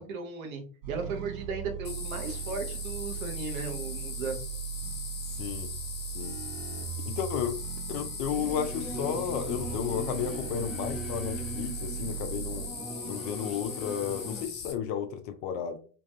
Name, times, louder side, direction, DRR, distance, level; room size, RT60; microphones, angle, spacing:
voice 1, 0.0-4.4, right 4 dB, 70° right, 0.9 m, -36 dB
sound 1, 0.8-12.7, right 10 dB, 45° right, 0.5 m, -38 dB
sound 2, 1.8-14.7, left 5 dB, 25° left, 0.9 m, -40 dB
voice 2, 5.4-5.7 6.1-6.4 7.1-7.6 7.9-12.7 13.0-15.8, left 8 dB, 55° left, 0.5 m, -33 dB
Singing / Musical instrument, 8.2-14.4, equal, ahead, 0.5 m, -40 dB
2.6 x 2.3 x 2.6 m
hypercardioid pair, 70°, 43 cm